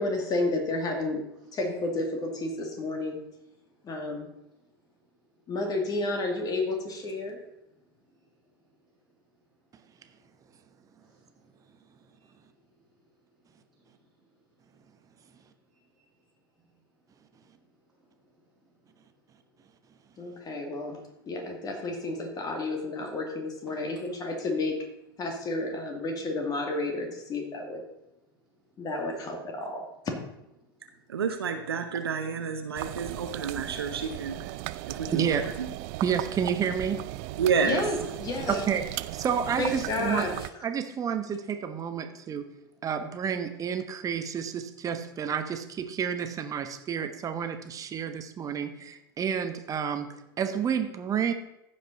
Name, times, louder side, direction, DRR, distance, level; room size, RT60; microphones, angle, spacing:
voice 1, 0.0-1.2 1.5-3.2 3.8-4.3 5.5-7.4 20.2-21.0 21.3-24.8 25.2-27.8 28.8-29.9 37.6-38.6 39.6-40.5, left 2 dB, 30° left, 3 dB, 2.3 m, -31 dB
voice 2, 3.3-3.9 4.4-5.5 7.6-19.6 19.9-21.3 22.2-22.3 23.7-24.3 28.3-28.9 30.6-31.2 42.0-42.8, right 1 dB, ahead, -6 dB, 2.3 m, -65 dB
voice 3, 31.1-34.6 34.9-35.7 37.4-37.8, right 6 dB, 80° right, 6 dB, 0.9 m, -29 dB
sound 1, 32.7-40.5, right 17 dB, 50° right, 0.4 m, -37 dB
voice 4, 35.1-35.4 36.0-37.0 38.5-38.8 39.1-40.3 40.6-42.5 42.8-50.1 50.4-51.3, right 7 dB, 25° right, 8 dB, 1.1 m, -30 dB
15.0 x 5.3 x 4.1 m, 0.90 s
figure-of-eight pair, 90°, 13 cm